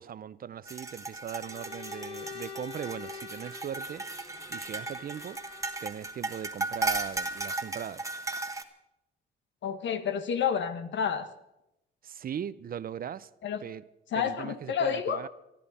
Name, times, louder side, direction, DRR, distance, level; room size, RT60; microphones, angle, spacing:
voice 1, 0.0-5.4 5.8-8.1 12.0-13.3 13.6-13.8 14.2-15.3, right 9 dB, 45° right, 0.6 m, -39 dB
sound 1, 0.6-8.6, right 2 dB, 15° right, 1.3 m, -36 dB
Bowed string instrument, 1.4-5.9, left 6 dB, 25° left, 1.9 m, -46 dB
voice 2, 9.6-11.3 13.4-13.6 14.1-15.2, left 7 dB, 70° left, 1.4 m, -29 dB
24.0 x 13.0 x 4.2 m
cardioid pair, 90°, 20 cm